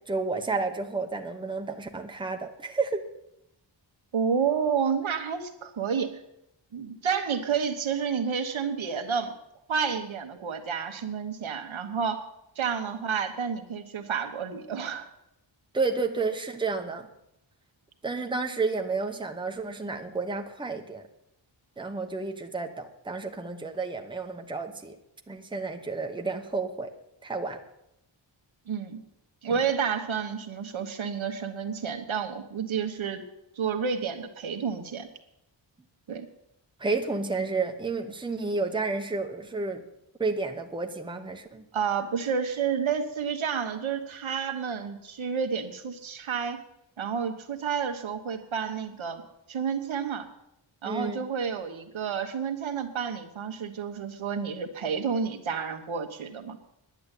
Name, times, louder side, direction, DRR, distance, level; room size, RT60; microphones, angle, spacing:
voice 1, 0.1-3.0 15.7-17.1 18.0-21.0 21.8-25.0 25.3-26.9 27.2-27.6 29.5-29.6 36.8-39.8 40.2-41.6 50.8-51.2, right 3 dB, 10° right, 5 dB, 0.9 m, -31 dB
voice 2, 4.1-6.1 6.7-9.3 9.7-12.2 12.6-15.1 28.7-29.0 29.4-33.2 33.6-35.1 36.1-36.3 41.7-46.6 47.0-49.2 49.5-50.3 50.8-56.6, right 6 dB, 80° right, 6 dB, 1.4 m, -30 dB
10.5 x 9.4 x 8.4 m, 0.83 s
wide cardioid pair, 165°, 47 cm